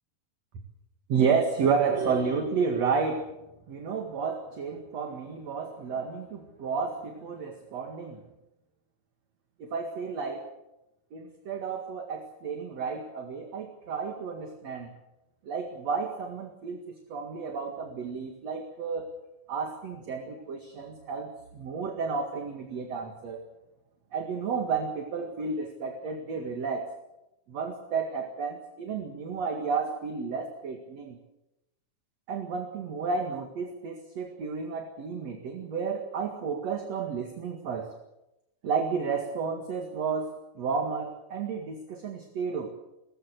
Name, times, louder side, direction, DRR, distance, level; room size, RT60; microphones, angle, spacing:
voice 1, 1.1-3.3 3.7-8.2 9.6-10.5 11.1-14.9 15.4-19.1 19.5-23.4 24.1-26.9 27.5-31.2 32.3-37.9 38.6-42.7, right 5 dB, 50° right, 3 dB, 2.9 m, -31 dB
23.0 x 18.0 x 8.2 m, 0.92 s
omnidirectional pair, 4.1 m